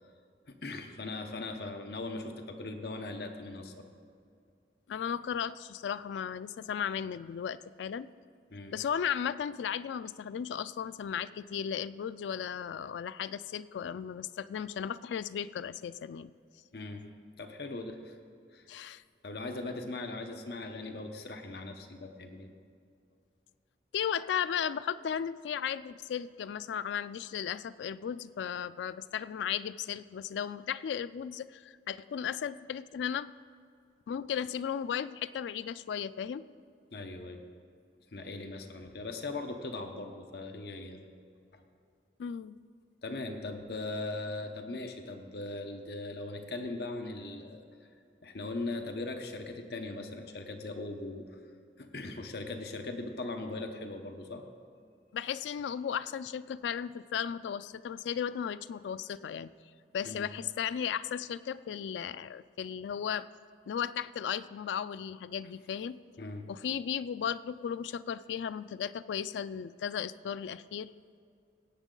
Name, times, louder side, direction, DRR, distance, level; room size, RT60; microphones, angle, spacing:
voice 1, 0.5-3.9 8.5-8.7 16.7-17.0 17.4-18.1 18.5-18.7 19.2-22.5 36.9-37.4 38.1-41.0 41.5-41.6 43.0-47.6 48.2-51.4 51.8-54.4 60.1-60.3 66.2-66.5, left 2 dB, 65° left, 5 dB, 0.8 m, -39 dB
voice 2, 4.9-8.1 8.7-16.3 18.7-19.0 23.9-33.3 34.1-36.4 42.2-42.6 55.1-59.5 59.9-63.3 63.7-66.0 66.5-70.9, left 8 dB, 90° left, 15 dB, 0.3 m, -35 dB
17.0 x 8.1 x 3.8 m, 2.3 s
head